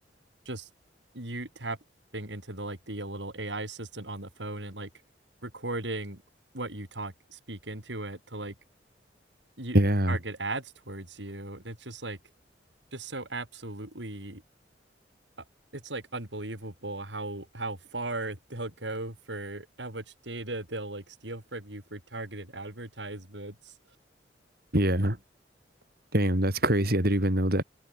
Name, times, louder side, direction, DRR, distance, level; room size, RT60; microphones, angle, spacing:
voice 1, 1.1-1.8 2.1-4.9 5.4-6.2 6.5-8.5 9.6-9.8 10.1-12.2 12.9-14.4 15.7-23.7, right 2 dB, 85° right, 6.1 m, -37 dB
voice 2, 9.7-10.2 24.7-25.2 26.1-27.6, right 1 dB, 60° right, 5.7 m, -24 dB
open air
head